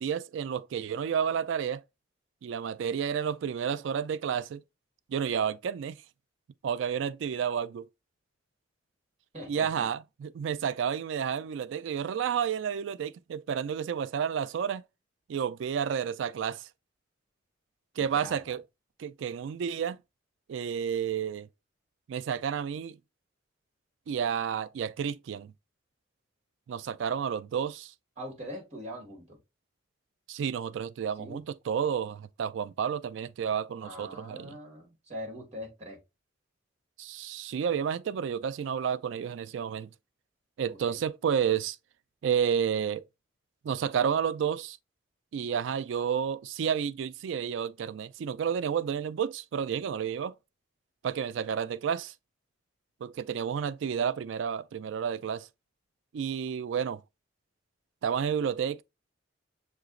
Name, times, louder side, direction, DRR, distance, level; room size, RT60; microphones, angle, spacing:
voice 1, 0.0-1.8 2.4-4.6 5.1-6.0 6.6-7.8 9.5-14.8 15.3-16.7 18.0-18.6 19.0-20.0 20.5-21.5 22.1-23.0 24.1-25.5 26.7-27.9 30.3-34.6 37.0-39.9 40.6-41.8 42.2-43.0 43.6-44.8 45.3-50.3 51.0-52.1 53.0-55.5 56.1-57.0 58.0-58.8, right 7 dB, 70° right, 0.3 m, -31 dB
voice 2, 9.3-9.9 17.9-18.5 28.2-29.4 31.2-31.4 33.8-36.0 40.7-41.0, equal, 35° right, 1.8 m, -42 dB
6.5 x 2.9 x 2.5 m
head